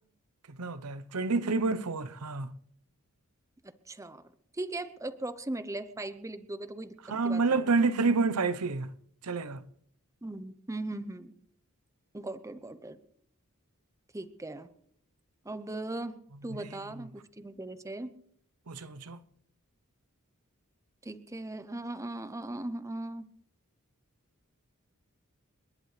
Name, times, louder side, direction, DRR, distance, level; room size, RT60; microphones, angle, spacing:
voice 1, 0.6-2.5 7.1-8.9 9.2-9.6 18.7-19.2, right 4 dB, 85° right, 0.8 m, -28 dB
voice 2, 3.6-4.2 4.5-6.9 7.2-7.8 10.2-11.4 12.1-13.0 14.1-14.7 15.4-18.2 21.0-23.3, right 2 dB, 15° right, 0.7 m, -39 dB
29.5 x 10.5 x 3.3 m
head